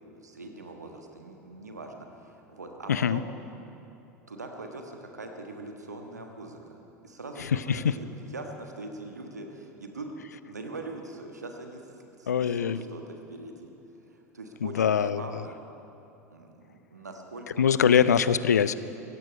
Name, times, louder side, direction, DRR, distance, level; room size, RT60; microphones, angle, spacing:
voice 1, 0.0-3.3 4.3-6.8 7.0-10.1 10.5-13.7 14.1-15.6 16.3-17.9, right 2 dB, 85° right, 3 dB, 1.4 m, -42 dB
voice 2, 2.9-3.2 7.7-7.8 12.3-12.8 14.8-15.2 17.6-18.7, left 7 dB, 80° left, 16 dB, 0.5 m, -22 dB
17.0 x 15.0 x 5.2 m, 2.8 s
figure-of-eight pair, 75°, 9 cm